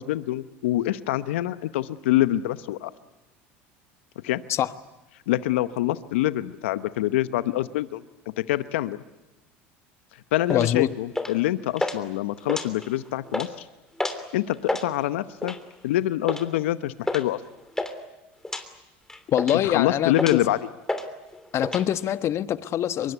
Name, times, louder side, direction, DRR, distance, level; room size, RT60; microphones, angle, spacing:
voice 1, 0.0-2.9 4.2-4.4 5.3-8.0 8.5-9.0 10.3-13.6 14.3-15.5 15.8-17.4 19.6-20.6, left 15 dB, 80° left, 14 dB, 0.9 m, -25 dB
voice 2, 10.5-10.9 19.3-20.4 21.5-23.1, left 11 dB, 45° left, 13 dB, 1.3 m, -24 dB
sound 1, 10.5-10.7 11.2-11.5 11.8-12.0 12.4-13.0 13.3-13.5 14.0-14.2 14.5-14.9 15.4-15.7 16.3-16.5 17.1-17.3 17.5-17.9 18.4-18.6 19.1-19.7 20.1-20.5 20.9-21.1 21.3-21.8, left 2 dB, 10° left, 3.1 m, -29 dB
25.0 x 23.0 x 8.3 m, 1.1 s
hypercardioid pair, 90°, 6 cm